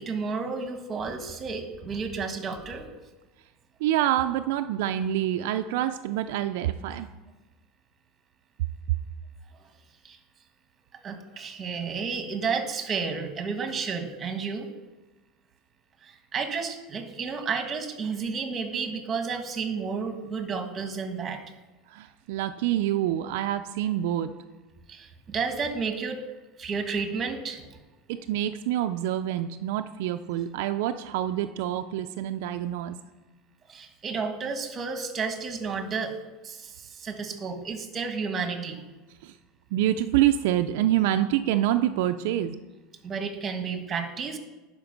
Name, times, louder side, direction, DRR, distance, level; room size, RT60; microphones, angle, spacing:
voice 1, 0.0-2.9 10.0-10.2 10.9-14.7 16.0-21.4 24.9-26.2 26.6-27.8 33.7-36.1 36.4-38.8 43.0-44.4, right 5 dB, 25° right, 6 dB, 1.3 m, -31 dB
voice 2, 3.8-7.1 21.9-24.3 28.1-33.0 39.2-39.3 39.7-42.6, right 12 dB, 75° right, 8 dB, 0.4 m, -26 dB
11.0 x 5.1 x 5.2 m, 1.2 s
supercardioid pair, 125°, 0 cm